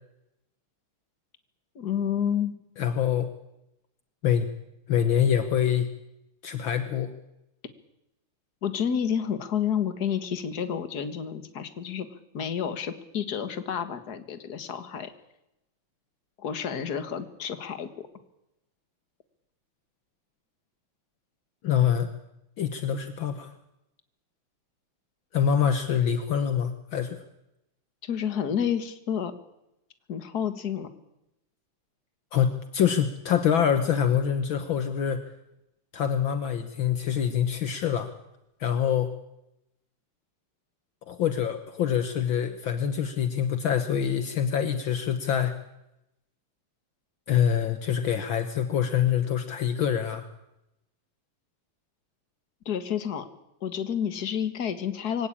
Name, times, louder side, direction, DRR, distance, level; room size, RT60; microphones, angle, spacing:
voice 1, 1.8-2.6 8.6-12.1 12.3-15.1 16.4-18.1 28.0-29.3 30.1-30.9 52.7-53.3 53.6-55.3, left 8 dB, 50° left, 10 dB, 2.1 m, -30 dB
voice 2, 2.8-3.3 4.2-4.5 4.9-5.9 6.4-7.1 21.6-22.1 22.6-23.5 25.3-27.2 32.3-35.2 35.9-38.1 38.6-39.1 41.1-45.6 47.3-50.3, left 8 dB, 65° left, 9 dB, 1.9 m, -25 dB
23.5 x 17.5 x 8.7 m, 0.87 s
omnidirectional pair, 2.4 m